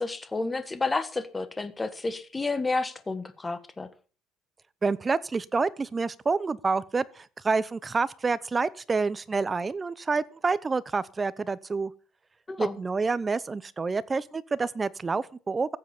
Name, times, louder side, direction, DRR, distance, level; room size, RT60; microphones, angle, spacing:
voice 1, 0.0-3.9 12.5-12.8, left 3 dB, 20° left, 1.6 m, -30 dB
voice 2, 4.8-11.9 12.6-15.8, right 4 dB, 25° right, 0.8 m, -28 dB
15.5 x 7.6 x 7.1 m
cardioid pair, 120°, 0 cm